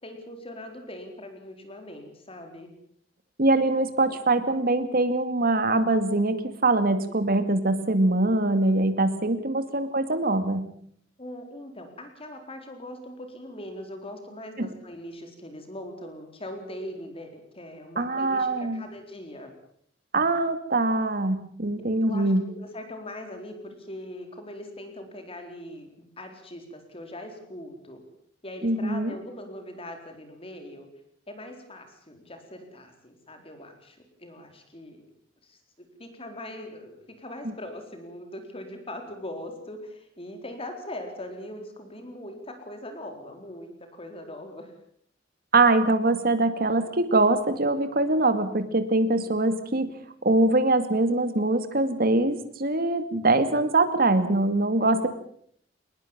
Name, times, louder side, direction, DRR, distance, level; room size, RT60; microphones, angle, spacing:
voice 1, 0.0-2.7 9.4-9.6 11.2-19.5 22.0-25.9 26.2-28.0 28.4-30.9 31.3-35.1 35.4-44.7 54.7-55.1, left 1 dB, 30° left, 5 dB, 4.2 m, -41 dB
voice 2, 3.4-10.6 14.6-14.7 18.0-18.8 20.1-22.4 28.6-29.1 45.5-49.9 50.2-55.1, right 2 dB, 50° right, 10 dB, 2.3 m, -23 dB
21.0 x 20.5 x 7.4 m, 0.63 s
head